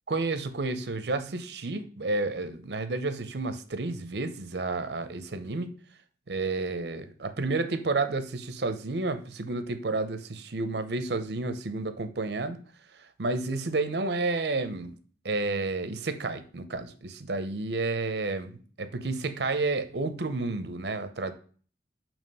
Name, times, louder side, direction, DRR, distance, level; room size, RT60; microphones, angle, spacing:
voice 1, 0.1-5.7 6.3-12.6 13.2-14.9 15.2-21.3, right 3 dB, 65° right, 10 dB, 0.7 m, -31 dB
7.1 x 3.0 x 5.4 m, 0.43 s
head